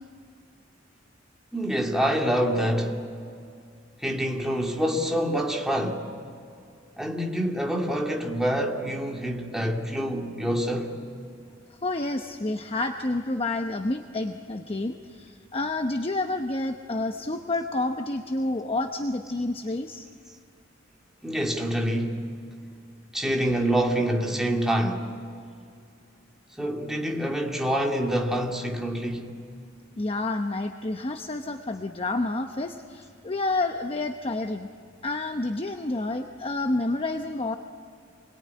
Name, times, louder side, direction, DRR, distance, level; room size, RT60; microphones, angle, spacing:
voice 1, 1.5-3.1 4.0-6.1 7.0-11.0 21.2-22.4 23.1-25.1 26.6-29.4, equal, ahead, 2.3 m, -26 dB
voice 2, 11.8-20.1 30.0-34.7 35.0-37.6, left 2 dB, 30° left, 0.9 m, -29 dB
28.5 x 21.5 x 9.5 m
head